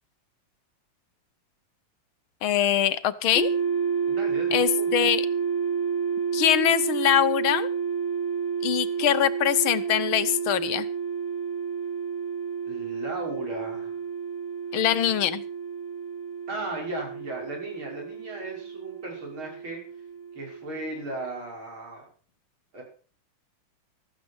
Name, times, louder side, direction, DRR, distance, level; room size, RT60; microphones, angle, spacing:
voice 1, 2.4-3.5 4.5-5.2 6.3-7.7 8.6-10.9 14.7-15.4, left 11 dB, 80° left, 14 dB, 1.8 m, -23 dB
sound 1, 3.3-21.3, right 6 dB, 35° left, 3.4 m, -30 dB
voice 2, 4.1-5.1 12.7-14.0 16.5-19.8 20.3-22.1 22.7-22.8, right 2 dB, 85° right, 0 dB, 6.9 m, -36 dB
15.0 x 14.0 x 4.8 m, 0.40 s
omnidirectional pair, 2.2 m